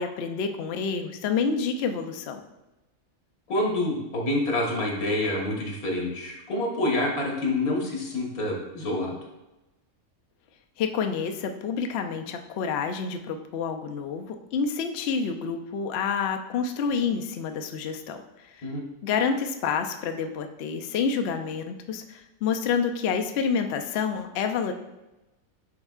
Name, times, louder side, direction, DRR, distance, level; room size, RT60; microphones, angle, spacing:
voice 1, 0.0-2.4 10.8-18.2 18.6-18.7 19.0-24.7, left 6 dB, 65° left, 6 dB, 0.7 m, -28 dB
voice 2, 3.5-9.2 18.6-18.8, left 1 dB, 90° left, -1 dB, 1.9 m, -27 dB
9.7 x 4.4 x 2.4 m, 0.99 s
omnidirectional pair, 1.5 m